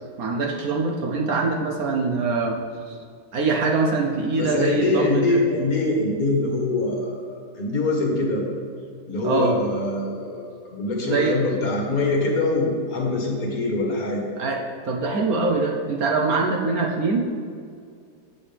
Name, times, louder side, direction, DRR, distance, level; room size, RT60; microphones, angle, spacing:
voice 1, 0.2-2.6 2.9-3.0 3.3-5.4 9.2-9.5 11.0-11.4 14.4-14.6 14.9-17.3, right 3 dB, 60° right, 1 dB, 1.3 m, -23 dB
voice 2, 4.4-8.5 9.1-14.2, left 2 dB, 55° left, 0 dB, 1.9 m, -24 dB
14.5 x 7.1 x 3.4 m, 2.1 s
omnidirectional pair, 1.9 m